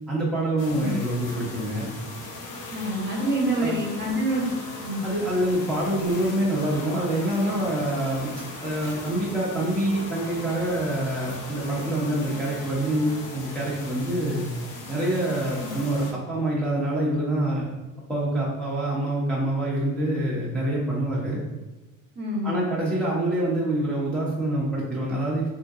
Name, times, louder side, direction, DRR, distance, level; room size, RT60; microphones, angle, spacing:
voice 1, 0.1-1.9 3.6-3.7 5.0-8.3 8.6-14.5 14.9-17.6 18.1-21.4 22.4-25.4, right 1 dB, 5° left, -7 dB, 0.6 m, -26 dB
sound 1, 0.6-16.1, left 2 dB, 75° left, 0.7 m, -38 dB
voice 2, 2.7-4.5 4.8-5.0 22.2-22.7, right 1 dB, 35° right, -2 dB, 0.8 m, -26 dB
3.6 x 2.7 x 2.4 m, 1.1 s
cardioid pair, 145°, 32 cm